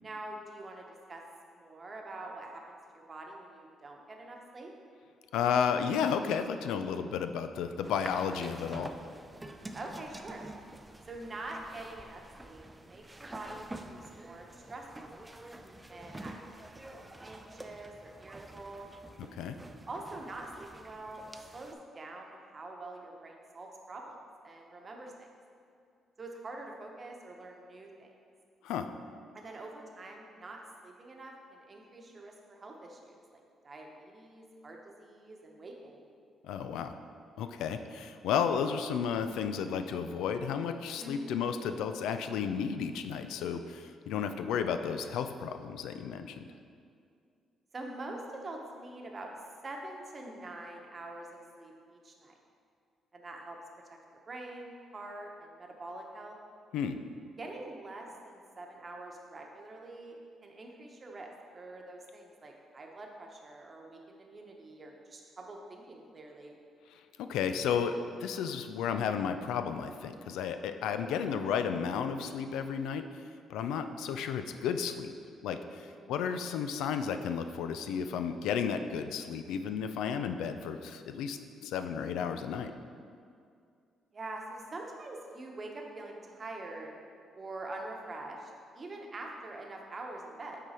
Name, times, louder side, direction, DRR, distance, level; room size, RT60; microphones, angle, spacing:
voice 1, 0.0-1.2 1.5-4.7 9.7-10.4 11.1-15.2 15.9-16.6 16.9-18.9 19.9-21.2 21.5-24.2 24.4-25.3 26.2-28.1 29.3-36.1 41.0-41.4 47.7-49.3 49.6-52.3 53.1-53.6 53.9-56.4 57.4-66.5 75.8-76.1 84.1-87.0 87.4-90.6, right 2 dB, 35° right, 1 dB, 0.9 m, -45 dB
voice 2, 5.3-8.9 19.4-19.6 28.6-28.9 36.4-36.9 37.4-46.4 56.7-57.0 67.2-67.9 68.2-73.0 73.5-75.1 75.4-82.7, left 7 dB, 90° left, 9 dB, 0.3 m, -33 dB
sound 1, 7.8-21.7, right 1 dB, 15° right, 0.4 m, -48 dB
7.9 x 3.8 x 4.3 m, 2.3 s
cardioid pair, 90°, 0 cm